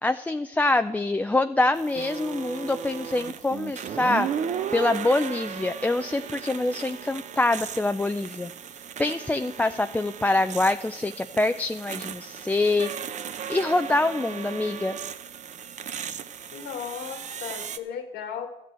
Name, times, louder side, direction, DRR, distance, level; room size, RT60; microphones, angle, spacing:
voice 1, 0.0-4.3 4.7-8.5 9.0-12.9 13.5-15.0, left 2 dB, 10° left, 8 dB, 0.4 m, -25 dB
sound 1, 1.7-17.8, right 8 dB, 45° right, 0.8 m, -36 dB
voice 2, 16.5-18.5, left 7 dB, 75° left, 7 dB, 1.9 m, -35 dB
13.5 x 6.8 x 8.9 m, 0.94 s
cardioid pair, 110°, 17 cm